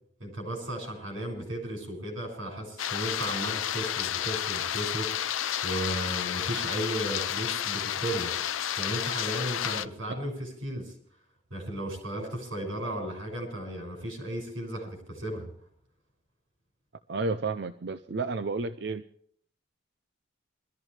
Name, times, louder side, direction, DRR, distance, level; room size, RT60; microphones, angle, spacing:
voice 1, 0.2-8.3 8.8-10.9 11.5-15.5, right 1 dB, 80° right, 3 dB, 6.5 m, -35 dB
sound 1, 2.8-9.9, left 10 dB, 80° left, 0.6 m, -31 dB
voice 2, 17.1-19.0, right 3 dB, 55° right, 11 dB, 0.5 m, -31 dB
22.5 x 14.0 x 3.3 m, 0.64 s
head